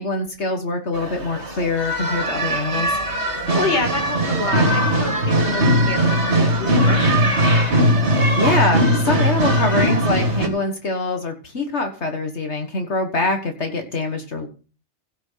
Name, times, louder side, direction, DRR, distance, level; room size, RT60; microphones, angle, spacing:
voice 1, 0.0-2.9 8.1-14.5, left 3 dB, 70° left, 5 dB, 1.9 m, -24 dB
sound 1, 0.9-10.5, right 1 dB, 70° right, 2.6 m, -19 dB
voice 2, 3.2-7.5, left 3 dB, 40° left, 5 dB, 2.1 m, -28 dB
16.5 x 6.2 x 5.7 m, 0.36 s
omnidirectional pair, 1.2 m